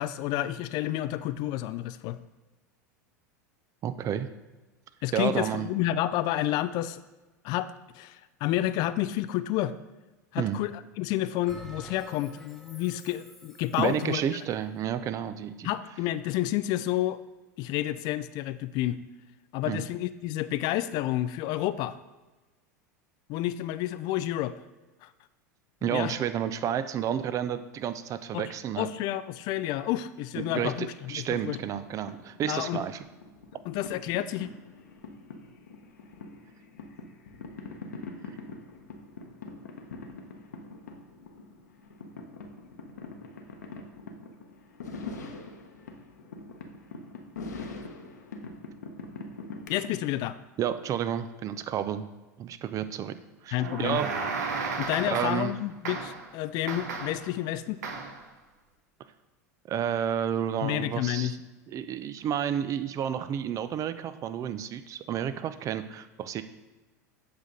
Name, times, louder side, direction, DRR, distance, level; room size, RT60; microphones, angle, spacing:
voice 1, 0.0-2.2 5.0-7.0 7.4-9.8 10.3-14.2 15.6-17.2 17.6-19.0 19.5-22.0 23.3-24.5 25.0-25.1 25.9-26.1 28.3-31.6 32.5-32.8 33.7-34.5 49.7-50.4 53.5-54.0 54.8-57.8 60.6-61.4, left 14 dB, 50° left, 14 dB, 0.4 m, -30 dB
voice 2, 3.8-4.3 5.1-5.7 10.4-10.6 13.8-15.7 19.6-19.8 25.8-28.9 30.3-33.0 50.6-52.1 52.4-53.1 53.4-54.1 55.1-55.5 59.7-61.3 61.7-66.4, right 9 dB, 35° right, 12 dB, 0.6 m, -30 dB
Bell, 11.5-14.3, right 1 dB, 5° left, 1.1 m, -49 dB
sound 1, 30.9-50.3, left 3 dB, 75° left, 1.0 m, -44 dB
sound 2, 53.6-55.6 55.8-56.3 56.7-57.3 57.8-58.2, right 4 dB, 75° right, 1.3 m, -34 dB
8.1 x 6.5 x 3.9 m, 1.2 s
hypercardioid pair, 85°, 9 cm